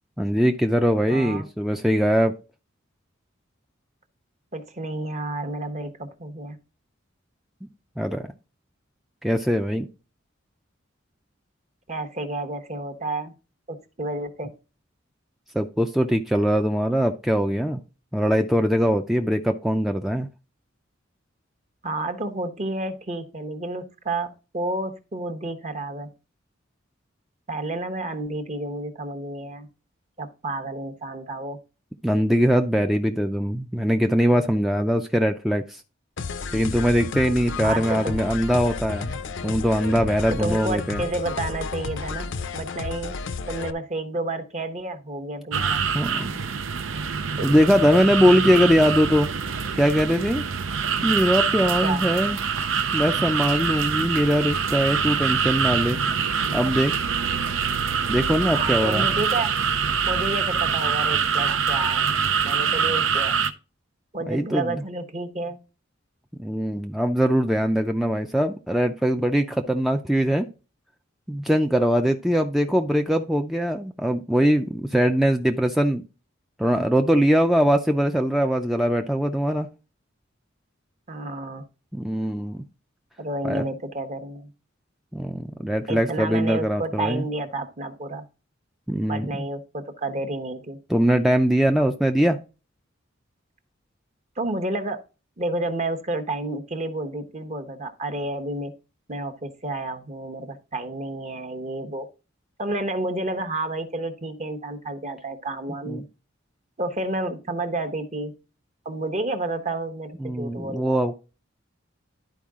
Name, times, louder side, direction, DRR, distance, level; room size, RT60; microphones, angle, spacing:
voice 1, 0.2-2.3 8.0-8.3 9.2-9.9 15.5-17.8 18.1-20.3 32.0-35.8 36.5-39.2 39.4-41.0 45.9-46.3 47.4-49.3 49.8-50.4 51.0-52.4 52.9-56.0 56.5-56.9 58.1-59.1 64.3-64.8 66.4-70.5 71.3-76.0 76.6-79.7 81.9-82.6 83.4-83.7 85.1-87.2 88.9-89.3 90.9-92.4 105.9-106.0 110.2-111.1, equal, ahead, 4 dB, 0.4 m, -21 dB
voice 2, 1.1-1.5 4.5-6.6 11.9-13.3 13.7-14.5 21.8-26.1 27.5-29.7 30.2-31.6 37.6-38.2 40.3-43.2 43.5-45.8 51.8-52.0 58.5-59.5 60.1-62.2 62.4-63.4 64.1-65.6 81.1-81.6 83.2-84.5 85.9-88.2 89.1-90.8 94.4-95.0 95.4-98.7 99.1-102.1 102.6-106.0 106.8-108.3 108.8-111.0, right 2 dB, 35° right, 7 dB, 1.0 m, -30 dB
sound 1, 36.2-43.7, left 4 dB, 65° left, 0.6 m, -32 dB
sound 2, 45.5-63.5, right 6 dB, 80° right, 0.7 m, -25 dB
11.5 x 4.7 x 3.6 m, 0.31 s
head